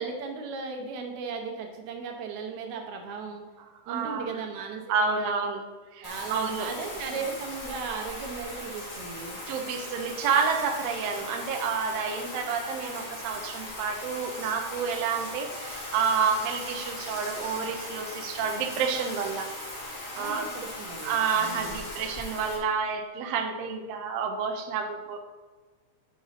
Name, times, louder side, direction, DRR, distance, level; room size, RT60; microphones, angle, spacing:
voice 1, 0.0-3.4 3.9-5.3 6.0-9.4 20.2-21.8, right 5 dB, 70° right, 3 dB, 2.1 m, -36 dB
voice 2, 3.9-4.4 4.9-5.6 5.9-6.7 9.5-19.5 20.2-20.5 21.0-25.2, right 6 dB, 85° right, 4 dB, 1.4 m, -29 dB
Bathtub (filling or washing), 6.0-22.6, left 1 dB, 35° left, 1.4 m, -39 dB
6.1 x 5.5 x 5.7 m, 1.4 s
omnidirectional pair, 4.0 m